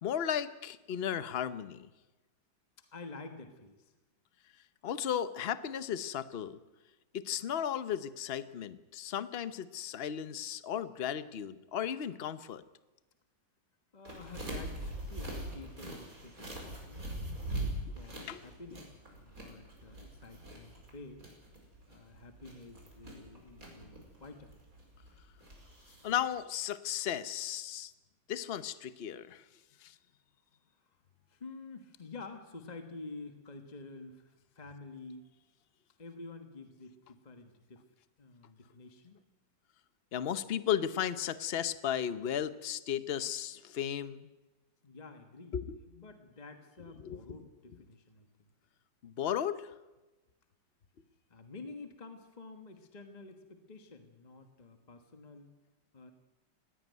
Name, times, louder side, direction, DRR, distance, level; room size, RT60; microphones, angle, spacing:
voice 1, 0.0-1.9 4.8-6.6 7.1-12.6 17.6-17.7 18.3-18.4 26.0-27.9 28.3-29.4 29.8-29.9 40.1-44.3 45.5-45.8 47.0-47.4 49.0-49.7, left 9 dB, 45° left, 13 dB, 0.8 m, -35 dB
voice 2, 2.8-3.9 13.9-17.1 17.8-21.3 21.9-24.5 30.8-30.9 31.3-35.3 36.0-37.8 38.2-39.2 44.8-48.5 51.3-55.5 55.9-56.1, left 3 dB, 25° left, 6 dB, 1.3 m, -49 dB
sound 1, 14.0-26.2, right 1 dB, 45° right, 5.6 m, -43 dB
19.5 x 16.5 x 9.4 m, 1.1 s
omnidirectional pair, 2.0 m